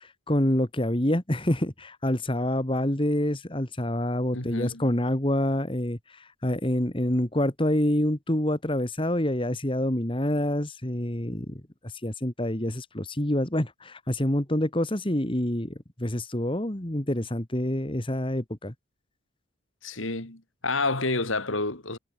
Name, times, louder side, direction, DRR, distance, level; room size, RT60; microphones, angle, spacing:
voice 1, 0.0-18.7, left 1 dB, 25° left, 1.9 m, -27 dB
voice 2, 4.3-4.9 19.8-22.0, left 3 dB, 80° left, 4.0 m, -29 dB
head